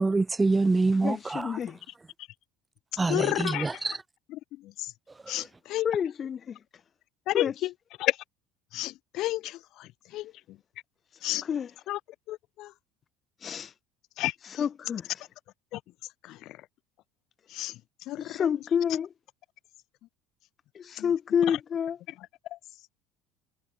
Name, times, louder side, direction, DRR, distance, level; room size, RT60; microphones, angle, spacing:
voice 1, 0.0-1.4 3.0-3.9, right 3 dB, 15° right, 1.6 m, -25 dB
voice 2, 1.0-1.8 5.8-6.6 7.3-7.5 11.4-11.7 13.4-13.7 14.4-15.1 18.2-19.1 20.8-22.0, left 8 dB, 35° left, 1.9 m, -29 dB
voice 3, 3.1-3.7 4.8-4.9 5.3-5.4 5.7-5.9 7.3-7.5 8.0-8.1 8.7-9.6 10.1-10.2 11.2-11.4 11.9-12.0 12.3-12.7 14.2-14.3 17.5-17.7 18.1-18.2, left 16 dB, 60° left, 0.6 m, -29 dB
supercardioid pair, 105°, 0 cm